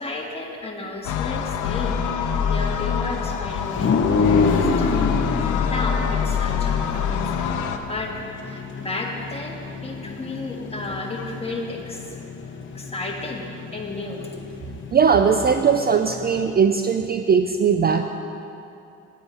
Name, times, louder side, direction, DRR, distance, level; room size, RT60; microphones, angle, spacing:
voice 1, 0.0-5.1 5.4-8.1 8.4-12.2 12.7-14.3 14.7-14.8, left 2 dB, 20° left, -1 dB, 1.7 m, -33 dB
sound 1, 1.0-7.8, left 7 dB, 85° left, 0.7 m, -25 dB
sound 2, 3.7-16.5, left 4 dB, 40° left, 0.9 m, -28 dB
voice 2, 14.9-18.0, right 6 dB, 30° right, 7 dB, 0.4 m, -19 dB
9.5 x 9.1 x 5.6 m, 2.7 s
cardioid pair, 90°, 30 cm